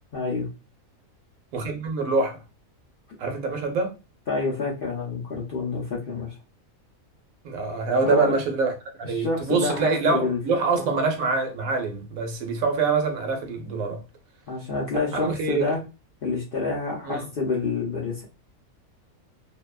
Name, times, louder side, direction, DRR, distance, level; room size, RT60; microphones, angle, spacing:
voice 1, 0.1-0.5 4.3-6.4 8.0-8.3 9.1-10.4 10.7-11.0 14.5-15.8 16.2-18.2, left 3 dB, 55° left, 0.6 m, -28 dB
voice 2, 1.5-2.4 3.2-3.9 7.4-8.7 9.0-14.0 15.1-15.7 17.1-17.3, right 4 dB, 80° right, 1.1 m, -25 dB
2.7 x 2.1 x 2.2 m
omnidirectional pair, 1.5 m